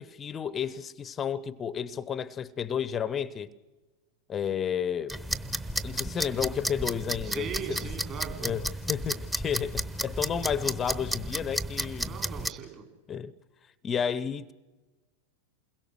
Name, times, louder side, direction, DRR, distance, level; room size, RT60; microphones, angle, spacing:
voice 1, 0.0-3.5 4.3-5.1 5.8-7.8 8.4-12.2 13.1-13.3 13.8-14.5, left 8 dB, 25° left, 0.7 m, -32 dB
sound 1, 5.1-12.5, right 1 dB, 10° right, 1.0 m, -33 dB
voice 2, 7.2-8.5 12.1-12.8, right 8 dB, 35° right, 3.8 m, -39 dB
28.5 x 22.0 x 6.3 m
figure-of-eight pair, 90°, 0 cm